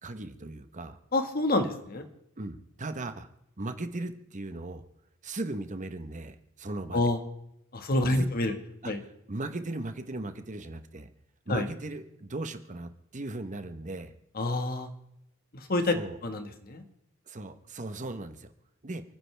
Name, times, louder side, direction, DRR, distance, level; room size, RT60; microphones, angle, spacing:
voice 1, 0.0-1.0 2.4-3.3 3.6-4.8 5.2-7.0 8.0-8.3 8.8-8.9 9.3-11.1 11.5-14.1 15.9-16.2 17.3-18.5 18.8-19.0, right 2 dB, 35° right, 9 dB, 1.0 m, -37 dB
voice 2, 1.1-2.0 6.9-7.2 7.7-8.5 8.8-9.0 11.5-11.7 14.4-14.9 15.7-16.0 16.2-16.8, left 2 dB, 45° left, 6 dB, 1.6 m, -27 dB
29.0 x 10.0 x 3.4 m, 0.79 s
head